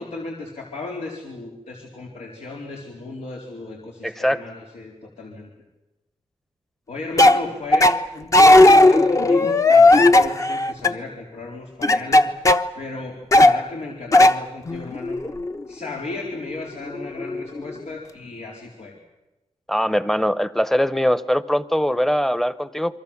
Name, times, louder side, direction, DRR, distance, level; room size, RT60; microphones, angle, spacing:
voice 1, 0.0-5.5 6.9-12.3 12.8-15.2 15.7-19.0, left 3 dB, 85° left, -1 dB, 4.1 m, -35 dB
voice 2, 4.0-4.4 19.7-23.0, equal, 5° left, 16 dB, 0.9 m, -21 dB
sound 1, 7.2-7.4 7.7-8.0 8.3-10.9 11.8-12.7 13.3-13.6 14.1-14.4 14.7-15.6 16.5-16.6 16.9-17.7, left 2 dB, 30° left, 0.9 m, -14 dB
28.5 x 23.5 x 7.3 m, 1.0 s
wide cardioid pair, 140°, 11 cm